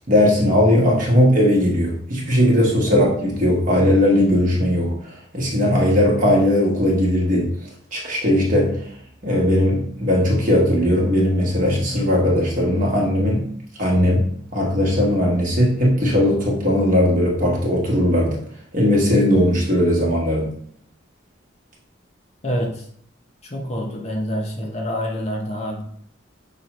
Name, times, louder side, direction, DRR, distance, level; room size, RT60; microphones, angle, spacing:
voice 1, 0.1-7.5 7.9-8.8 9.2-13.5 13.8-18.4 18.7-20.5, left 1 dB, 45° right, -3 dB, 1.3 m, -18 dB
voice 2, 22.4-22.8 23.4-25.8, equal, 35° left, 0 dB, 0.7 m, -27 dB
5.8 x 3.0 x 3.0 m, 0.63 s
head